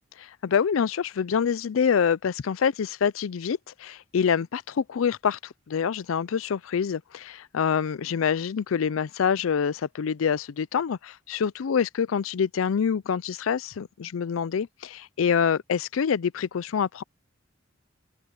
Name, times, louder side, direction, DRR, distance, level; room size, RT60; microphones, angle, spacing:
voice 1, 0.2-5.4 5.7-17.0, left 7 dB, 85° left, 0.4 m, -26 dB
open air
head